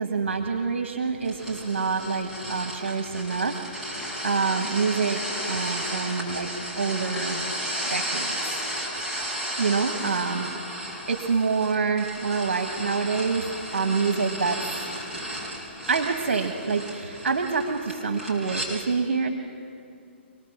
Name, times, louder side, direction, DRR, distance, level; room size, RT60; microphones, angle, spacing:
voice 1, 0.0-6.5 6.7-7.4 7.9-8.3 9.6-13.4 13.7-14.6 15.9-19.3, right 5 dB, 80° right, 5 dB, 1.4 m, -27 dB
sound 1, 1.2-18.7, equal, 5° right, 6.1 m, -34 dB
25.5 x 19.0 x 7.3 m, 2.5 s
hypercardioid pair, 135°, 6 cm